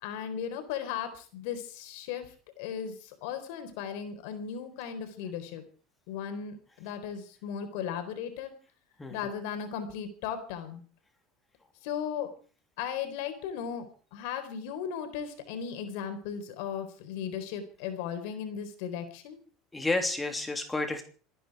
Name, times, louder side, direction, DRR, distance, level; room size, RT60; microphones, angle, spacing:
voice 1, 0.0-2.3 2.6-5.6 6.1-8.5 9.1-10.8 11.8-12.3 12.8-19.4, left 8 dB, 75° left, 8 dB, 4.1 m, -36 dB
voice 2, 9.0-9.4 19.7-21.0, left 2 dB, 15° left, 5 dB, 3.0 m, -31 dB
27.0 x 10.0 x 4.9 m, 0.41 s
supercardioid pair, 115°, 0 cm